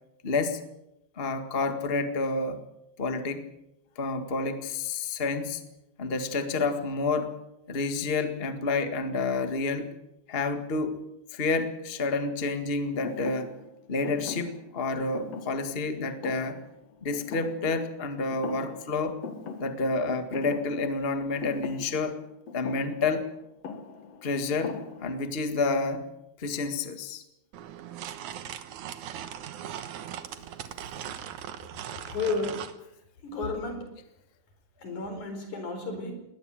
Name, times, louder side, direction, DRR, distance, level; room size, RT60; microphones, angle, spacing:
voice 1, 0.2-0.6 1.2-2.6 3.0-3.5 3.9-5.6 6.0-7.4 7.7-9.9 10.3-11.0 11.3-13.5 13.9-16.6 17.0-19.2 19.6-22.2 22.5-23.3 24.2-26.1 26.4-27.2, left 3 dB, 25° left, 7 dB, 1.5 m, -29 dB
Thump thud, 13.0-18.0 18.3-18.9 19.2-25.4, left 5 dB, 60° left, 2.8 m, -41 dB
sound 1, 27.5-32.8, right 10 dB, 85° right, 2.6 m, -39 dB
voice 2, 32.1-32.6 33.2-33.9 34.8-36.1, left 3 dB, 90° left, 5 dB, 5.9 m, -32 dB
20.5 x 19.5 x 7.5 m, 0.88 s
omnidirectional pair, 3.3 m